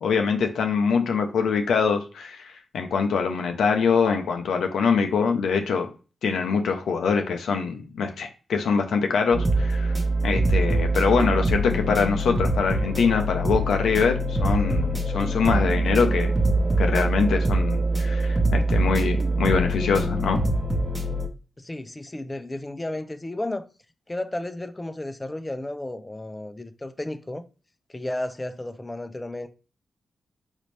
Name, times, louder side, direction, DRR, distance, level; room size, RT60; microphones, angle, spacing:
voice 1, 0.0-5.9 6.2-9.9 10.2-16.3 16.8-20.4, left 5 dB, 80° left, 0.5 m, -24 dB
sound 1, 9.3-21.3, right 1 dB, 25° right, 0.9 m, -24 dB
voice 2, 21.6-23.6 24.1-27.4 27.9-29.5, left 1 dB, 20° left, 0.5 m, -33 dB
4.0 x 2.6 x 3.2 m
supercardioid pair, 45°, 0 cm